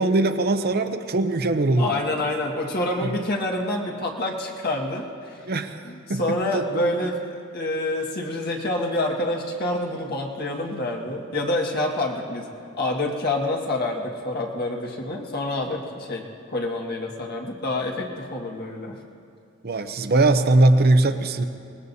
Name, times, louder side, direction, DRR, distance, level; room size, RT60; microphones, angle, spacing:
voice 1, 0.0-1.9 3.0-3.1 5.5-6.2 6.5-6.6 19.6-21.5, right 2 dB, 50° right, 8 dB, 0.7 m, -20 dB
voice 2, 1.8-5.5 5.8-7.2 7.5-12.5 12.8-19.0, left 1 dB, 50° left, 0 dB, 1.7 m, -27 dB
24.0 x 20.0 x 2.8 m, 2.5 s
head